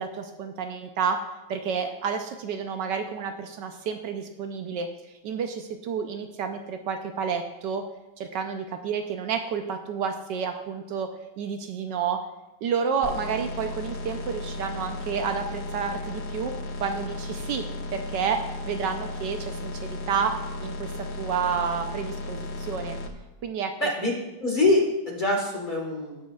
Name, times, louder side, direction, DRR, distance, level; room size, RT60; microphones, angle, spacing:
voice 1, 0.0-4.9 5.2-7.8 8.2-11.1 11.4-12.2 12.6-16.5 16.8-17.6 17.9-20.9 21.2-23.0 23.4-23.7, right 6 dB, 75° right, 6 dB, 1.2 m, -30 dB
sound 1, 13.0-23.1, left 2 dB, 75° left, 0.6 m, -35 dB
voice 2, 23.8-24.1 24.4-26.3, left 2 dB, 25° left, -1 dB, 1.5 m, -24 dB
17.5 x 6.3 x 2.3 m, 1.0 s
omnidirectional pair, 2.1 m